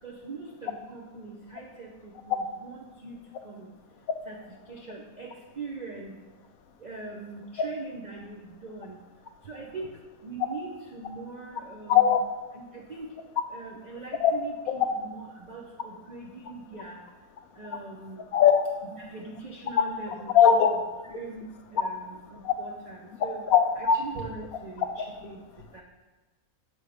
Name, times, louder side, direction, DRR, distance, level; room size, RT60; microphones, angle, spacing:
voice 1, 0.0-3.7 4.3-6.2 6.8-9.0 9.4-12.1 12.5-13.2 13.5-17.1 17.5-18.2 18.8-20.4 21.0-23.4 23.8-25.4 25.7-25.8, right 3 dB, 70° right, -1 dB, 0.4 m, -42 dB
voice 2, 11.9-12.2 14.2-14.3 18.3-18.7 20.3-20.7 22.4-22.5 23.5-24.0, left 8 dB, 70° left, 7 dB, 1.0 m, -19 dB
6.9 x 3.6 x 4.9 m, 1.2 s
omnidirectional pair, 1.6 m